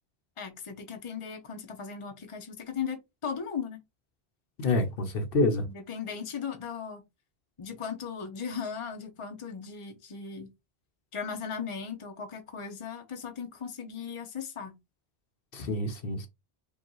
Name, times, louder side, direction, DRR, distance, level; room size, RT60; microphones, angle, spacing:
voice 1, 0.4-3.8 5.6-7.0 7.6-10.5 11.1-14.7, left 6 dB, 35° left, 0.8 m, -37 dB
voice 2, 4.6-5.6 15.5-16.3, left 2 dB, 65° left, 0.9 m, -27 dB
4.9 x 2.4 x 3.0 m
omnidirectional pair, 1.1 m